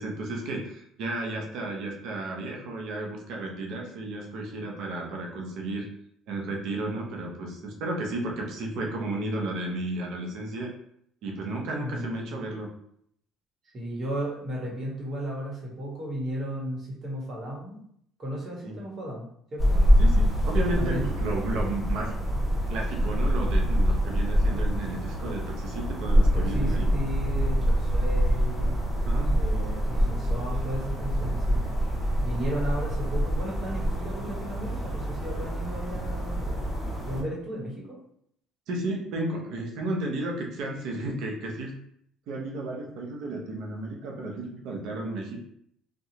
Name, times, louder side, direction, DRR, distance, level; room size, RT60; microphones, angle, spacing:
voice 1, 0.0-5.9 6.3-10.7 11.2-12.7 18.6-18.8 20.0-22.4 22.7-26.9 29.1-29.3 38.7-41.7 42.3-45.4, right 2 dB, 70° right, 1 dB, 0.7 m, -33 dB
voice 2, 11.8-12.4 13.7-17.8 18.2-19.8 20.8-21.1 26.3-28.8 29.3-31.7 32.2-38.0, equal, 45° right, -3 dB, 1.2 m, -35 dB
sound 1, 19.6-37.2, equal, 20° left, 1.1 m, -25 dB
2.8 x 2.2 x 2.8 m, 0.69 s
supercardioid pair, 75°, 0 cm